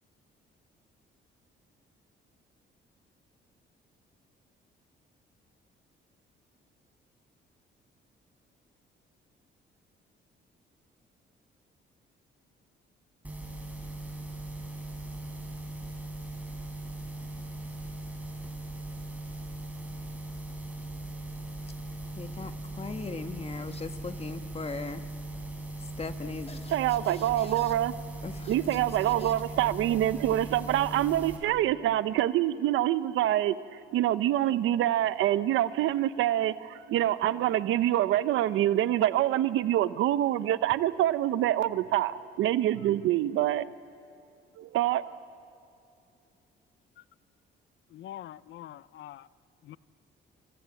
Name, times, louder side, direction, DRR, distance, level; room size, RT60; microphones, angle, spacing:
sound 1, 13.2-31.4, right 2 dB, 10° right, 5.4 m, -39 dB
voice 1, 22.2-25.0 26.0-26.7 27.1-27.7 28.2-28.8 29.2-29.3, left 4 dB, 30° left, 1.7 m, -39 dB
voice 2, 26.7-27.9 28.5-33.6 33.9-43.7 44.6-45.0, right 13 dB, 85° right, 0.9 m, -26 dB
voice 3, 47.9-49.2 49.7-49.8, left 12 dB, 70° left, 0.6 m, -44 dB
28.5 x 26.0 x 7.8 m
cardioid pair, 90°, 20 cm